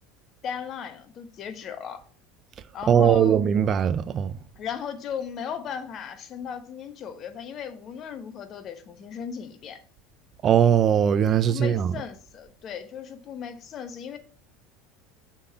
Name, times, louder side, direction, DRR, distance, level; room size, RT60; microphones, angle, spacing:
voice 1, 0.4-2.0 2.7-3.4 4.6-9.8 11.5-14.2, left 7 dB, 45° left, 0.9 m, -36 dB
voice 2, 2.9-4.3 10.4-11.9, right 8 dB, 40° right, 0.4 m, -20 dB
6.6 x 3.7 x 5.6 m
hypercardioid pair, 80°, 0 cm